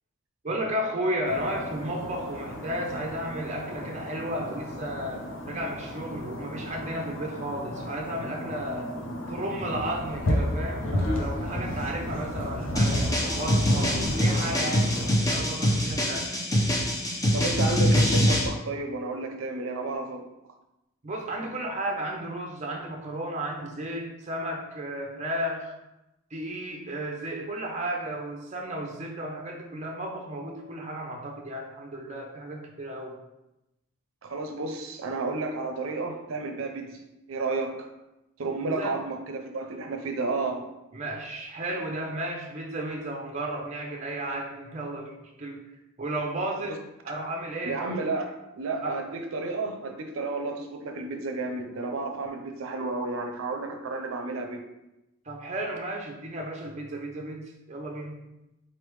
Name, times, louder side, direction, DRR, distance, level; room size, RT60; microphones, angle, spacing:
voice 1, 0.4-8.9 9.3-16.4 21.0-25.7 26.3-33.2 38.6-39.0 40.9-45.7 46.0-46.8 47.0-47.8 48.8-49.0 55.2-58.2, right 1 dB, 35° right, 1 dB, 0.6 m, -33 dB
sound 1, 1.2-15.1, left 1 dB, 75° left, 0.7 m, -33 dB
sound 2, 12.8-18.5, equal, 15° left, 0.5 m, -24 dB
voice 2, 17.3-20.3 34.2-37.0 37.3-37.9 38.4-40.7 47.6-54.6, right 3 dB, 85° right, 5 dB, 0.5 m, -32 dB
4.1 x 3.3 x 3.1 m, 0.93 s
head